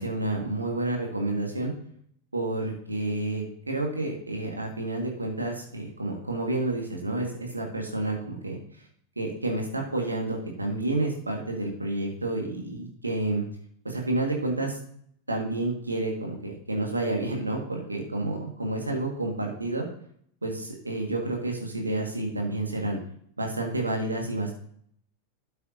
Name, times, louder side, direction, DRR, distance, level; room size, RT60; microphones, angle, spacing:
voice 1, 0.0-1.7 2.3-8.6 9.2-13.4 13.8-14.8 15.3-19.8 20.4-23.0 23.4-24.6, right 2 dB, 80° right, 1 dB, 1.9 m, -30 dB
12.5 x 6.5 x 2.8 m, 0.63 s
figure-of-eight pair, 90°, 0 cm